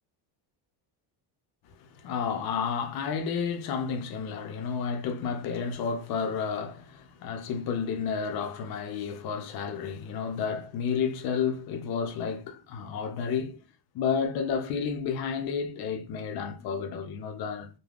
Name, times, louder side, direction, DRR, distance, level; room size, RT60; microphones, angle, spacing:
voice 1, 1.8-13.6 13.9-17.7, left 6 dB, 60° left, 0.5 m, -31 dB
3.4 x 2.1 x 2.3 m
cardioid pair, 170°, 43 cm